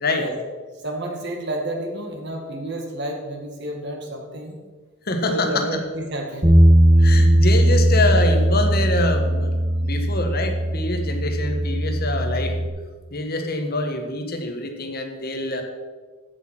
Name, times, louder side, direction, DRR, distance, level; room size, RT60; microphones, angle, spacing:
voice 1, 0.8-4.6 5.3-6.6 7.0-7.1, right 1 dB, 55° right, 2 dB, 2.1 m, -30 dB
voice 2, 5.0-5.7 7.0-9.5 9.8-12.6 13.1-15.6, left 2 dB, 50° left, 5 dB, 1.4 m, -25 dB
Bass guitar, 6.4-12.7, right 1 dB, 35° right, 2.2 m, -18 dB
15.0 x 6.3 x 6.0 m, 1.4 s
head